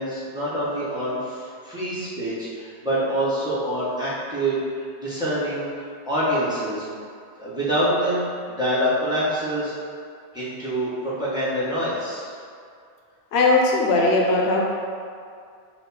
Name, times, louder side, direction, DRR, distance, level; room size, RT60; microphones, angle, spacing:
voice 1, 0.0-6.8 7.4-9.7 10.3-12.3, right 1 dB, 5° right, -11 dB, 1.0 m, -26 dB
voice 2, 13.3-14.7, left 2 dB, 85° left, -2 dB, 0.9 m, -19 dB
4.4 x 2.4 x 4.0 m, 2.3 s
omnidirectional pair, 1.1 m